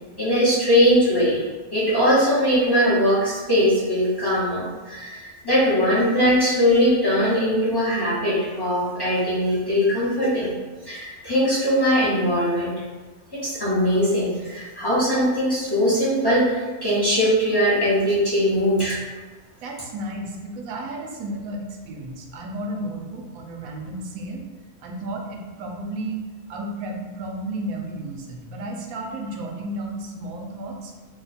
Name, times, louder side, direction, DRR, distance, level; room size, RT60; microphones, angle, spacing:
voice 1, 0.2-1.4 1.7-10.5 10.8-12.7 13.3-19.0, equal, 25° left, -9 dB, 0.5 m, -20 dB
voice 2, 19.6-24.4 24.8-26.2 26.5-30.9, right 1 dB, 75° right, 2 dB, 1.0 m, -33 dB
2.8 x 2.1 x 4.0 m, 1.3 s
omnidirectional pair, 1.5 m